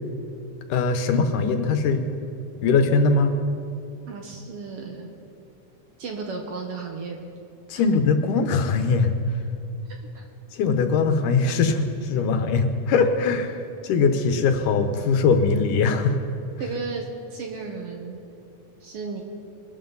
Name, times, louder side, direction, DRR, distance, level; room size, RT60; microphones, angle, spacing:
voice 1, 0.7-2.0 2.6-3.3 7.7-9.1 10.5-16.2, left 4 dB, 85° left, 7 dB, 2.5 m, -21 dB
voice 2, 4.1-5.1 6.0-7.2 10.1-10.3 16.6-17.1 17.3-18.2 18.8-19.2, right 4 dB, 60° right, 2 dB, 1.7 m, -34 dB
22.5 x 12.5 x 4.0 m, 2.6 s
omnidirectional pair, 3.6 m